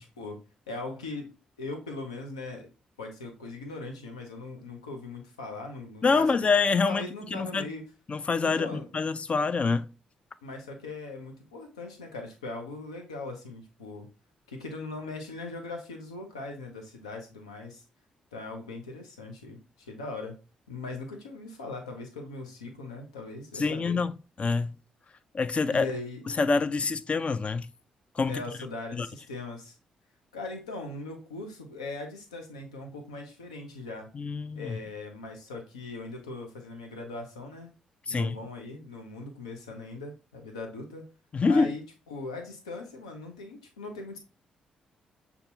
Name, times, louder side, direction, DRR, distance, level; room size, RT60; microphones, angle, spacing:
voice 1, 0.0-1.3 1.6-2.7 3.0-6.3 6.9-7.9 8.4-8.9 10.4-14.1 14.5-17.8 18.3-20.4 20.7-24.0 25.7-26.2 28.3-29.7 30.3-34.1 34.5-37.7 38.1-41.1 41.5-44.2, left 3 dB, 90° left, 0.7 m, -40 dB
voice 2, 6.0-7.7 8.1-9.9 23.5-24.1 24.4-24.8 25.3-25.9 26.3-27.7 28.1-28.4 28.9-29.1 34.1-34.8 38.1-38.4 41.3-41.8, left 4 dB, 40° left, 0.4 m, -26 dB
6.6 x 2.3 x 2.7 m
hypercardioid pair, 40°, 3 cm